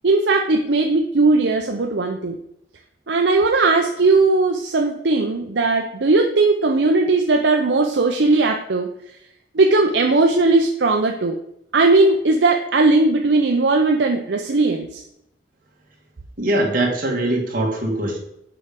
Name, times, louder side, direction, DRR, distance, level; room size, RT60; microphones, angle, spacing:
voice 1, 0.0-2.4 3.1-8.9 9.5-11.4 11.7-15.0, right 3 dB, 70° right, 2 dB, 0.7 m, -18 dB
voice 2, 16.4-18.2, right 1 dB, 50° right, -1 dB, 2.1 m, -21 dB
6.9 x 5.0 x 6.9 m, 0.78 s
head